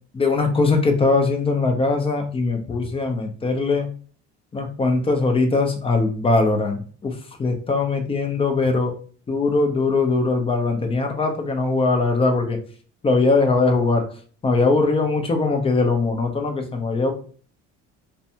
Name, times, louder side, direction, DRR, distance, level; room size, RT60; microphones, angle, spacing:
voice 1, 0.1-3.9 4.5-8.9 9.3-12.6 13.0-14.1 14.4-17.1, left 3 dB, 20° left, 4 dB, 0.5 m, -21 dB
2.6 x 2.2 x 2.7 m, 0.42 s
cardioid pair, 115°, 30 cm